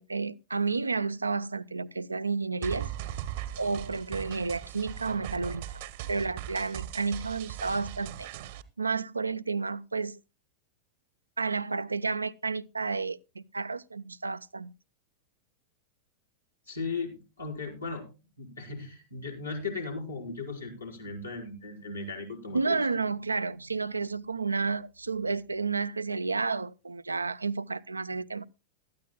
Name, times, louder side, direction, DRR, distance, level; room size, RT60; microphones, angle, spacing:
voice 1, 0.0-2.9 3.6-5.6 6.1-8.3 8.8-10.2 11.4-14.7 22.5-28.5, right 4 dB, 80° right, 0.5 m, -31 dB
sound 1, 2.6-8.6, right 12 dB, 55° right, 0.9 m, -39 dB
voice 2, 16.7-18.1 18.4-22.8, left 4 dB, 80° left, 4.1 m, -37 dB
18.0 x 13.0 x 2.2 m
figure-of-eight pair, 90°, 0 cm